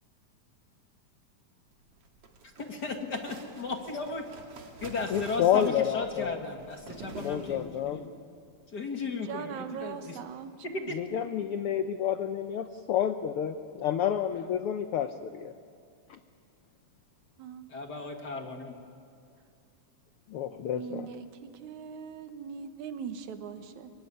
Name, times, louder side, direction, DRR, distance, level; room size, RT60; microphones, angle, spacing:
sound 1, 1.9-8.0, right 4 dB, 50° right, 2.9 m, -47 dB
voice 1, 2.8-4.2 4.8-8.1 8.7-10.2 10.6-11.0 17.7-18.7, left 3 dB, 40° left, 3 dB, 1.8 m, -35 dB
voice 2, 5.1-6.4 7.2-8.0 10.9-15.5 20.3-21.1, left 9 dB, 80° left, 9 dB, 1.2 m, -29 dB
voice 3, 9.2-11.3 17.4-17.7 20.7-23.9, right 7 dB, 70° right, 8 dB, 2.5 m, -41 dB
25.0 x 23.5 x 9.9 m, 2.4 s
omnidirectional pair, 3.5 m